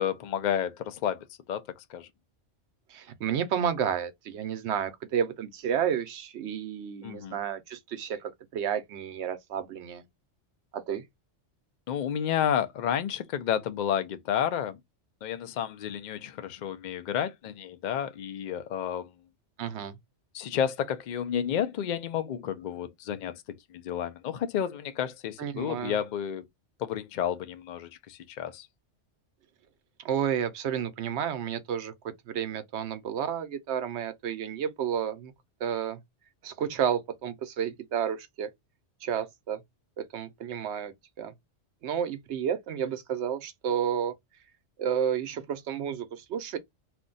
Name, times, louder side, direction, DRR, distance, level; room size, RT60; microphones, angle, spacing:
voice 1, 0.0-1.6 1.9-2.1 7.0-7.4 11.9-14.8 15.2-19.1 20.3-26.4 26.8-28.7, left 9 dB, 60° left, 0.5 m, -31 dB
voice 2, 2.9-10.0 10.7-11.0 19.6-20.0 25.4-26.0 30.0-31.9 32.3-35.3 35.6-36.0 36.4-38.5 39.0-39.6 40.0-40.9 41.2-41.3 41.8-44.1 44.8-46.6, right 8 dB, 70° right, 0.9 m, -31 dB
2.6 x 2.2 x 3.8 m
omnidirectional pair, 1.2 m